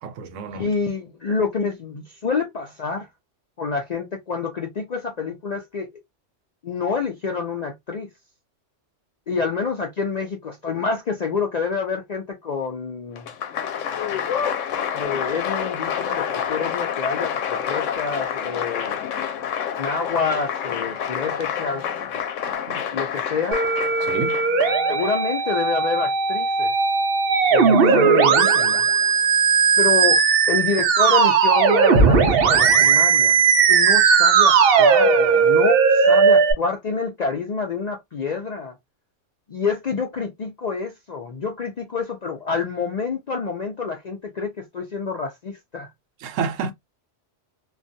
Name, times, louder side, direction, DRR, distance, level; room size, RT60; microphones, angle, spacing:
voice 1, 0.0-0.7 22.5-22.8 24.0-24.4 46.2-46.7, right 5 dB, 85° right, 0.9 m, -29 dB
voice 2, 0.5-3.1 3.6-5.9 6.6-8.1 9.3-13.3 14.9-19.0 19.8-21.9 22.9-23.6 24.9-26.7 27.5-28.9 29.8-30.2 30.5-33.4 33.7-38.7 39.5-45.9, left 5 dB, 60° left, 0.4 m, -27 dB
Applause, 13.2-25.1, left 8 dB, 85° left, 0.9 m, -28 dB
Musical instrument, 23.5-36.5, right 5 dB, 60° right, 0.7 m, -17 dB
2.4 x 2.2 x 2.5 m
omnidirectional pair, 1.2 m